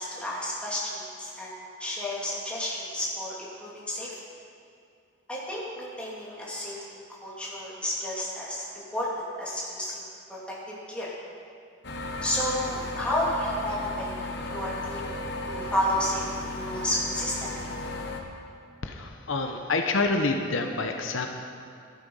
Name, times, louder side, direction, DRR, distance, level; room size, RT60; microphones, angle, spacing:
voice 1, 0.0-1.5 1.8-4.2 5.3-6.8 7.2-11.1 12.2-14.1 14.5-15.2 15.4-17.5, left 1 dB, 5° left, -7 dB, 2.5 m, -31 dB
sound 1, 11.8-18.2, left 2 dB, 55° left, 1.2 m, -35 dB
voice 2, 18.8-21.3, left 3 dB, 70° left, 4 dB, 0.8 m, -27 dB
13.5 x 11.0 x 5.5 m, 2.5 s
head